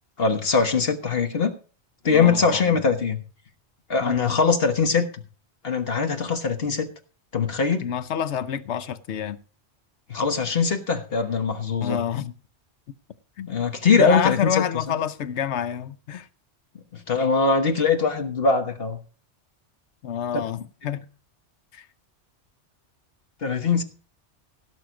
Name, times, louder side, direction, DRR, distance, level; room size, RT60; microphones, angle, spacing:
voice 1, 0.2-1.5 2.0-3.2 3.9-5.2 5.6-6.9 7.3-7.9 10.1-12.0 13.5-15.0 16.9-19.0 23.4-23.8, left 5 dB, 55° left, 1.4 m, -22 dB
voice 2, 2.1-2.8 4.0-4.4 7.8-9.4 11.8-12.3 13.4-13.5 14.0-16.3 20.0-21.1 21.7-21.8, left 9 dB, 75° left, 1.0 m, -27 dB
16.5 x 6.4 x 5.1 m
omnidirectional pair, 1.2 m